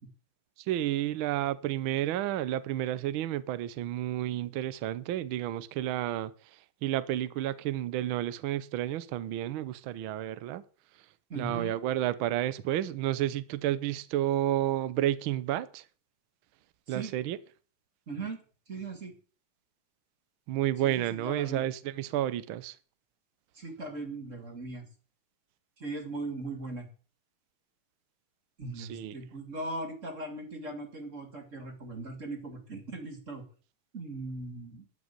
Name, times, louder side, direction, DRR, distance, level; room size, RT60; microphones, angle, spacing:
voice 1, 0.7-6.3 6.8-10.6 11.3-15.8 16.9-17.4 20.5-22.7 28.8-29.1, right 13 dB, 85° right, 1.1 m, -31 dB
voice 2, 11.3-11.7 16.9-17.1 18.1-18.4 18.7-19.1 20.8-21.7 23.5-24.9 25.8-26.9 28.6-33.4 33.9-34.8, right 2 dB, 25° right, 2.3 m, -39 dB
13.0 x 5.3 x 9.0 m
omnidirectional pair, 3.3 m